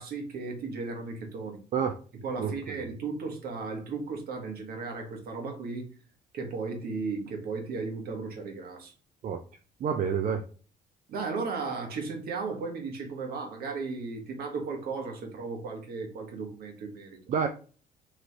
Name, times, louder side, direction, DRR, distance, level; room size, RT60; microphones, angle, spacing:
voice 1, 0.0-1.6 2.2-5.9 6.3-8.9 11.1-17.2, right 4 dB, 65° right, 1.3 m, -35 dB
voice 2, 9.8-10.5 17.3-17.5, right 7 dB, 50° right, 0.5 m, -27 dB
3.1 x 3.1 x 4.1 m
cardioid pair, 110°, 17 cm